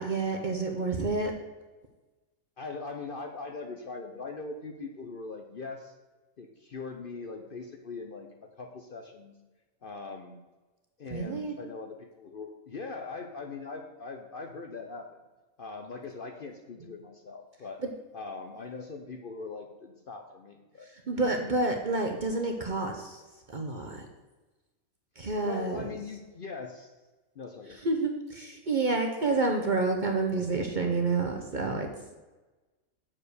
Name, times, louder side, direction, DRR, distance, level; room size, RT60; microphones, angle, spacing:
voice 1, 0.0-1.3 11.1-11.6 21.1-23.2 23.5-24.1 25.2-25.9 27.8-31.9, right 3 dB, 45° right, 3 dB, 0.7 m, -29 dB
voice 2, 2.6-5.9 6.4-9.4 9.8-10.4 11.0-15.2 15.6-17.8 18.1-20.9 21.1-21.2 25.4-26.9 27.4-27.8, left 4 dB, 50° left, 4 dB, 0.7 m, -41 dB
7.3 x 4.9 x 6.5 m, 1.2 s
omnidirectional pair, 1.5 m